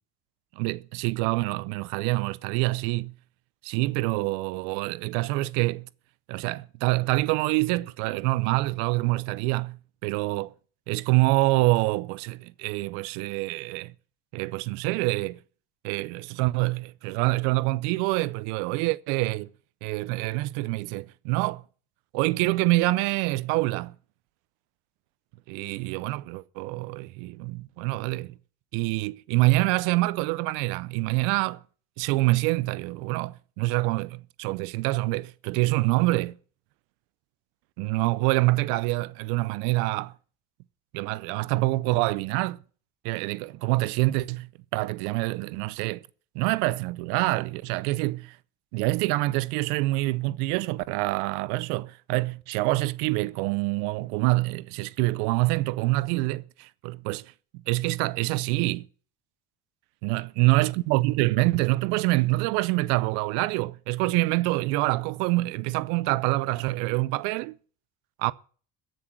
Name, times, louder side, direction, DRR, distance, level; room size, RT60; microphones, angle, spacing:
voice 1, 0.6-3.1 3.6-5.9 6.3-10.5 10.9-13.9 14.3-15.4 15.8-19.5 19.8-21.6 22.1-24.0 25.5-28.3 28.7-31.6 32.0-36.4 37.8-40.1 40.9-42.6 43.0-46.0 46.3-48.4 48.7-57.3 57.7-58.9 60.0-67.6 68.2-68.3, right 21 dB, 90° right, 0.7 m, -26 dB
14.0 x 6.4 x 9.0 m
supercardioid pair, 90°, 43 cm